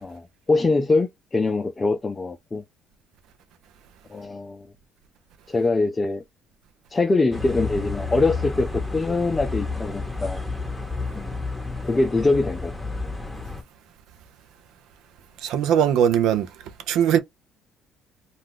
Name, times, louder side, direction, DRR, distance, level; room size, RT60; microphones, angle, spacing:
voice 1, 0.0-2.6 4.1-4.7 5.5-6.2 6.9-10.4 11.1-11.3 11.8-12.7, left 3 dB, 25° left, 0.4 m, -23 dB
sound 1, 7.3-13.6, left 3 dB, ahead, 0.9 m, -31 dB
voice 2, 15.4-16.5 16.9-17.2, right 9 dB, 75° right, 0.6 m, -20 dB
2.5 x 2.2 x 3.6 m
supercardioid pair, 70°, 0 cm